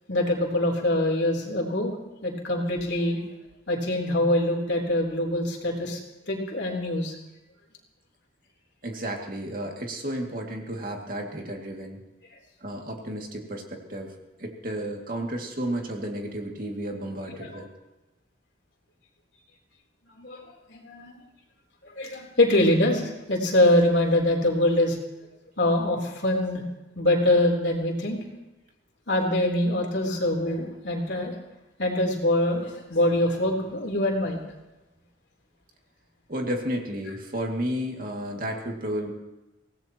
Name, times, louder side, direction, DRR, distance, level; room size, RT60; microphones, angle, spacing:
voice 1, 0.1-2.0 2.2-3.2 3.7-6.0 6.3-7.2 17.4-17.6 20.2-21.1 21.8-25.0 25.6-26.6 27.0-28.2 29.1-31.4 31.8-34.4, left 1 dB, 70° left, 0 dB, 3.7 m, -24 dB
voice 2, 8.8-12.0 12.6-17.7 36.3-39.1, right 1 dB, 50° right, 1 dB, 2.4 m, -32 dB
24.0 x 17.5 x 3.0 m, 1.0 s
head